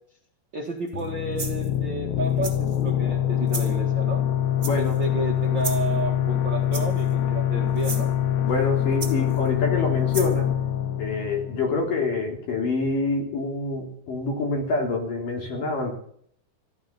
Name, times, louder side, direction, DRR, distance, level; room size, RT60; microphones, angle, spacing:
voice 1, 0.5-4.2 4.8-8.1, right 3 dB, 45° right, -1 dB, 1.7 m, -32 dB
sound 1, 0.9-12.3, left 10 dB, 85° left, 3.2 m, -25 dB
sound 2, 0.9-1.0 1.4-1.7 2.4-2.8 3.5-3.7 4.6-5.0 5.6-5.9 6.7-7.1 7.7-8.0 9.0-9.5 10.1-10.4, right 3 dB, 10° right, 2.4 m, -34 dB
voice 2, 4.6-4.9 8.4-10.5 11.0-16.0, left 3 dB, 55° left, 2 dB, 4.7 m, -26 dB
14.5 x 12.5 x 6.9 m, 0.64 s
omnidirectional pair, 4.6 m